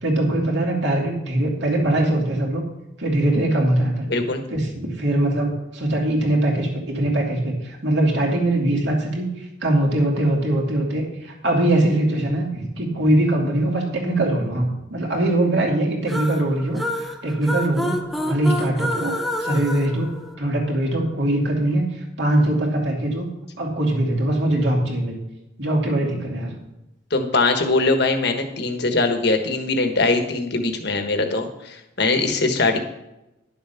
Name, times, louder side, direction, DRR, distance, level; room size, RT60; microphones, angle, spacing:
voice 1, 0.0-2.6 3.0-4.1 4.5-16.8 17.2-18.0 18.2-19.1 19.4-20.1 20.4-23.3 23.6-25.2 25.6-26.5, right 1 dB, 60° right, -1 dB, 2.7 m, -22 dB
voice 2, 4.1-4.4 27.1-32.8, left 3 dB, 55° left, 5 dB, 1.3 m, -21 dB
sound 1, 16.1-20.8, equal, ahead, 0.7 m, -28 dB
11.5 x 7.2 x 5.7 m, 0.95 s
head